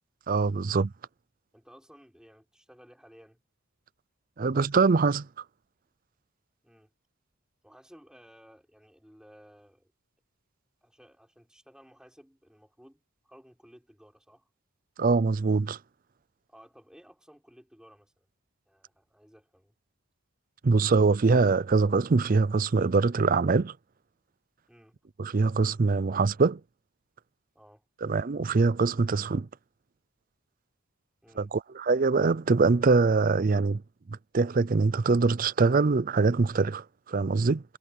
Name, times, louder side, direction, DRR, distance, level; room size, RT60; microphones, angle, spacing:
voice 1, 0.3-0.9 4.4-5.3 15.0-15.8 20.6-23.7 25.2-26.6 28.0-29.5 31.4-33.8 34.1-37.6, right 4 dB, 40° right, 0.5 m, -23 dB
voice 2, 1.5-3.4 6.6-6.9 7.6-9.9 10.8-14.5 16.5-18.3 18.7-19.7 24.7-25.0 27.5-27.9 31.2-31.5, equal, 5° right, 6.3 m, -56 dB
head